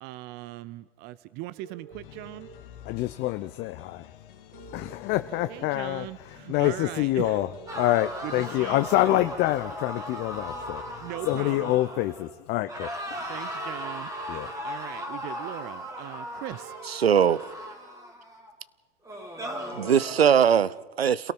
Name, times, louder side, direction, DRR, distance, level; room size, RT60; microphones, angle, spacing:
voice 1, 0.0-2.5 5.5-7.5 8.2-9.2 11.0-11.8 13.3-14.1 14.6-16.7, right 16 dB, 35° right, 0.6 m, -39 dB
sound 1, 1.6-2.5 4.5-5.5 7.5-8.5 10.5-11.5 13.5-14.5 16.5-17.5, right 9 dB, 65° right, 7.9 m, -48 dB
sound 2, 1.9-11.7, left 10 dB, 60° left, 2.5 m, -50 dB
voice 2, 2.8-4.1 4.7-7.5 7.8-12.9 14.3-14.5, left 16 dB, 35° left, 0.8 m, -26 dB
sound 3, 7.7-12.3 12.7-18.5 19.0-20.5, equal, 10° right, 3.5 m, -37 dB
voice 3, 16.9-17.4 19.7-21.3, right 8 dB, 85° right, 0.8 m, -21 dB
28.0 x 17.5 x 5.5 m
hypercardioid pair, 105°, 30 cm